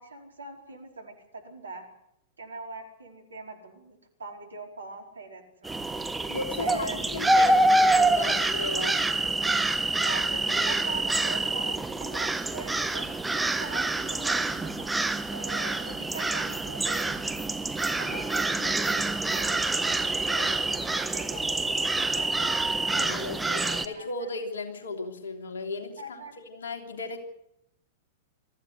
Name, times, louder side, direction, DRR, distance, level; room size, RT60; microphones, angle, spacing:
voice 1, 0.0-1.9 2.4-5.8 6.6-7.0 10.0-13.1 13.6-14.8 15.3-17.5 18.0-22.6 23.3-24.3 26.0-26.3, right 2 dB, 75° right, 2 dB, 4.7 m, -42 dB
sound 1, 5.6-23.9, right 2 dB, 10° right, 1.3 m, -26 dB
voice 2, 6.3-9.1 22.9-26.0 26.4-27.2, left 3 dB, 70° left, 4 dB, 3.2 m, -36 dB
23.0 x 14.5 x 8.1 m, 0.80 s
figure-of-eight pair, 100°, 0 cm